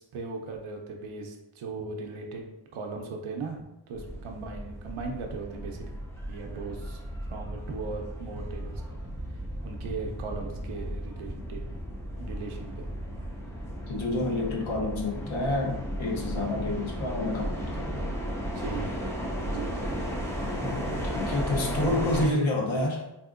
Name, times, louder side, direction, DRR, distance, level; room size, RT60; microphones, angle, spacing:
voice 1, 0.0-2.4 2.7-5.9 6.3-7.0 7.3-8.8 9.6-11.6 12.2-12.9 18.4-18.9 19.5-19.8, right 4 dB, 80° right, 2 dB, 0.6 m, -38 dB
sound 1, 3.9-22.3, equal, 5° left, 0.3 m, -34 dB
voice 2, 13.9-18.1 21.1-23.0, left 2 dB, 70° left, 0 dB, 0.8 m, -29 dB
3.5 x 2.7 x 2.4 m, 0.94 s
wide cardioid pair, 135°, 48 cm